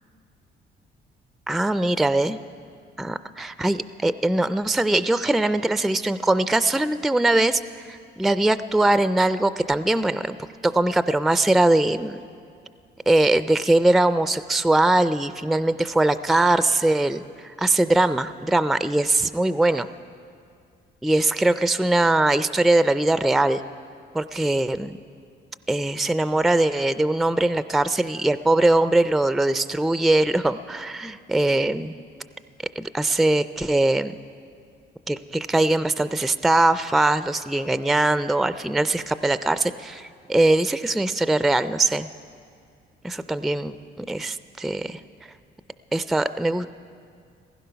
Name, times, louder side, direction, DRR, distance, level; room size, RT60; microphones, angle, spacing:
voice 1, 1.5-2.4 3.0-10.4 10.6-12.2 13.1-19.9 21.0-23.6 24.1-25.0 25.7-31.9 32.8-34.1 35.1-42.1 43.0-45.0 45.9-46.7, right 2 dB, ahead, 13 dB, 0.3 m, -21 dB
16.0 x 15.5 x 5.7 m, 2.3 s
cardioid pair, 90°, 20 cm